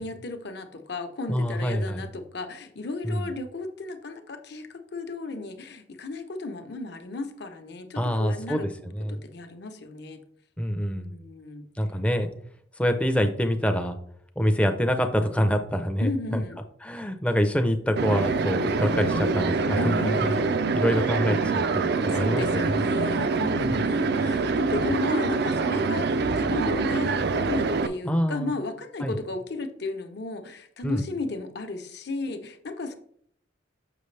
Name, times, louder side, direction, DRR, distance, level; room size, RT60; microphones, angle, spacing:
voice 1, 0.0-8.7 9.1-10.2 10.9-11.6 16.0-16.6 19.8-20.6 22.1-33.0, left 3 dB, 55° left, 7 dB, 0.8 m, -34 dB
voice 2, 1.3-2.1 3.0-3.3 8.0-9.2 10.6-11.1 11.8-12.3 12.8-14.0 14.4-16.4 16.8-20.4 20.7-22.8 23.6-23.8 28.0-28.5 29.0-29.2 30.8-31.0, equal, 5° left, 6 dB, 0.5 m, -26 dB
sound 1, 18.0-27.9, right 4 dB, 55° right, 0.4 m, -25 dB
6.8 x 5.9 x 3.2 m, 0.64 s
head